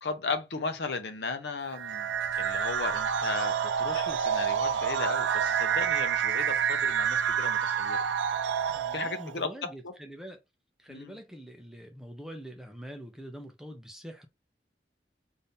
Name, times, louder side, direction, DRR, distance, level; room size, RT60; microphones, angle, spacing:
voice 1, 0.0-8.0 8.9-9.9 10.9-11.2, left 4 dB, 70° left, 0.7 m, -36 dB
sound 1, 1.7-9.3, right 7 dB, 85° right, 0.3 m, -28 dB
voice 2, 8.7-10.4 10.8-14.3, equal, 5° right, 0.5 m, -44 dB
2.7 x 2.6 x 3.5 m
head